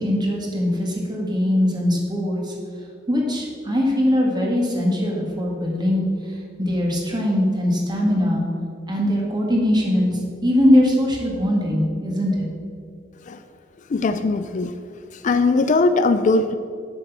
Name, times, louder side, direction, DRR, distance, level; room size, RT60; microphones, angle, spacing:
voice 1, 0.0-2.4 3.1-6.1 6.6-8.4 8.9-12.5, left 1 dB, 25° right, -1 dB, 1.8 m, -21 dB
voice 2, 13.9-14.7 15.1-16.6, left 3 dB, 45° left, 10 dB, 0.4 m, -20 dB
7.9 x 6.2 x 7.1 m, 2.3 s
head